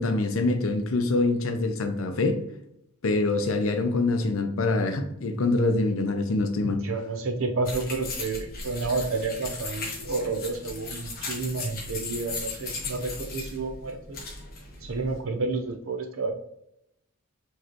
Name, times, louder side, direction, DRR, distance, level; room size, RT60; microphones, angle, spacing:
voice 1, 0.0-2.4 3.0-6.8, left 2 dB, 65° left, 0.6 m, -25 dB
voice 2, 6.6-14.2 14.8-16.3, right 3 dB, 65° right, 0.6 m, -30 dB
sound 1, 7.7-15.2, left 3 dB, 40° left, 1.1 m, -37 dB
4.7 x 3.1 x 3.0 m
head